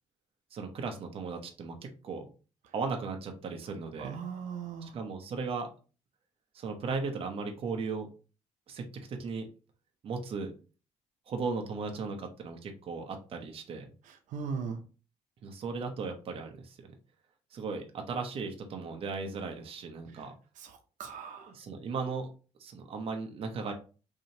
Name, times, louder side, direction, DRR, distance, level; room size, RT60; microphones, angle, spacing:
voice 1, 0.5-1.8 2.0-2.3 2.7-4.2 4.8-5.7 6.5-8.1 8.7-9.5 10.0-10.5 11.3-13.8 15.4-16.9 17.5-20.3 21.4-22.3 22.6-23.7, right 4 dB, 45° right, 3 dB, 0.8 m, -36 dB
voice 2, 4.0-5.0 14.0-14.8 20.1-20.2 20.6-21.5, right 6 dB, 80° right, 4 dB, 0.6 m, -39 dB
4.9 x 2.8 x 2.7 m, 0.35 s
cardioid pair, 165°, 13 cm